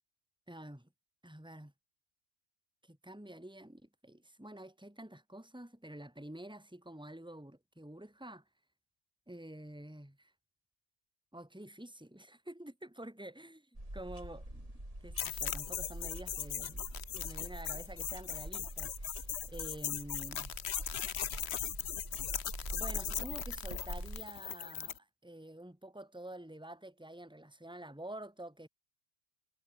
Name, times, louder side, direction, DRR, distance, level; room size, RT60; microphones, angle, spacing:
voice 1, 0.5-0.9 1.2-1.7 2.8-8.4 9.3-10.3 11.3-13.6 13.9-14.7 15.0-16.9 17.1-20.5 22.7-28.7, right 1 dB, 5° right, 2.9 m, -48 dB
sound 1, 13.8-24.2, right 1 dB, 35° right, 6.8 m, -45 dB
sound 2, 15.2-25.0, left 9 dB, 75° left, 1.1 m, -39 dB
omnidirectional pair, 1.1 m